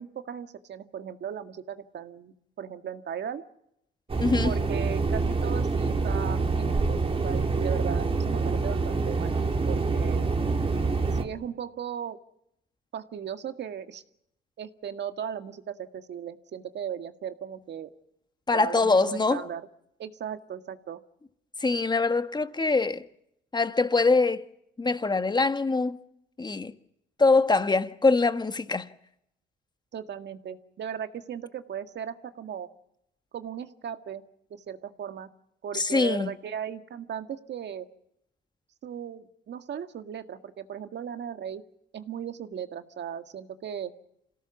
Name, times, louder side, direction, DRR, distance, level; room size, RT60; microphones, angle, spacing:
voice 1, 0.0-3.4 4.4-9.4 9.7-10.3 11.1-12.2 12.9-14.0 14.6-17.9 18.5-19.7 20.0-21.0 29.9-32.7 33.3-34.2 34.5-35.3 35.6-37.9 38.8-41.6 41.9-43.9, right 8 dB, 60° right, 1.9 m, -37 dB
sound 1, 4.1-11.2, right 4 dB, 30° right, 3.1 m, -26 dB
voice 2, 4.2-4.5 18.5-19.4 21.6-23.1 23.5-24.4 24.8-26.0 26.4-26.7 27.2-28.9 35.7-36.3, left 3 dB, 20° left, 1.5 m, -23 dB
27.0 x 17.5 x 7.2 m
cardioid pair, 90°, 20 cm